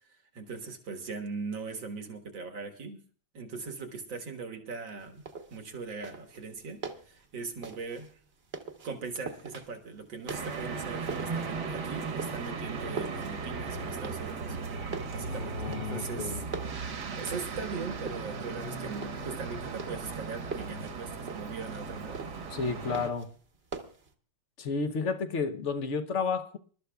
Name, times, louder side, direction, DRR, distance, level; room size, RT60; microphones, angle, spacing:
voice 1, 0.1-3.0 3.3-5.2 5.5-6.8 7.1-8.1 8.8-14.6 15.1-16.4 17.1-22.2, right 4 dB, 80° right, 2.3 m, -40 dB
sound 1, 5.0-24.1, right 4 dB, 40° right, 1.1 m, -44 dB
sound 2, 10.3-23.1, right 4 dB, 65° right, 1.8 m, -37 dB
voice 2, 15.3-16.4 22.5-23.3 24.6-26.6, left 5 dB, 50° left, 0.9 m, -32 dB
27.0 x 12.5 x 2.3 m
omnidirectional pair, 2.0 m